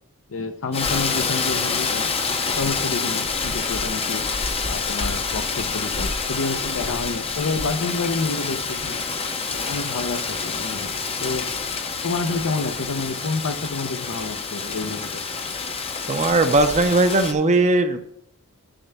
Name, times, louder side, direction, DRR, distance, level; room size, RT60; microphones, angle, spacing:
voice 1, 0.3-2.1 2.5-4.2 4.7-9.0 9.5-11.5 12.0-15.2, left 3 dB, 65° left, 9 dB, 0.7 m, -29 dB
Rain, 0.7-17.3, left 4 dB, 25° left, 0.7 m, -27 dB
voice 2, 16.1-18.0, right 2 dB, 30° right, 8 dB, 0.6 m, -18 dB
10.0 x 3.3 x 6.8 m, 0.76 s
head